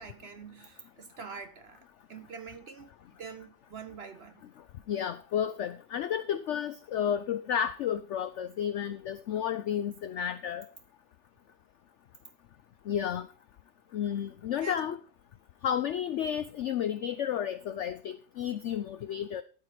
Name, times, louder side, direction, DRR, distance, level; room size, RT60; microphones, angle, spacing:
voice 1, 0.0-2.9 3.2-4.4 14.6-14.8, right 5 dB, 50° right, 0.8 m, -45 dB
voice 2, 4.9-10.7 12.9-13.3 13.9-15.0 15.6-19.4, left 9 dB, 75° left, 0.6 m, -32 dB
12.5 x 4.7 x 4.8 m
omnidirectional pair, 1.8 m